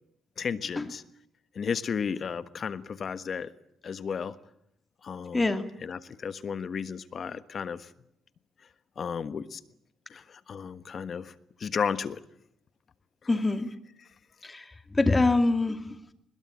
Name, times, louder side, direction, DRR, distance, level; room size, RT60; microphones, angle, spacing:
voice 1, 0.4-1.0 1.5-3.5 3.8-4.3 5.0-5.4 5.8-7.9 9.0-9.6 10.1-11.3 11.6-12.2, left 6 dB, 50° left, 13 dB, 1.4 m, -33 dB
voice 2, 5.3-5.6 13.3-13.7 14.4-16.1, left 2 dB, 20° left, 8 dB, 2.5 m, -25 dB
22.0 x 20.5 x 9.8 m, 0.76 s
cardioid pair, 90°, 0 cm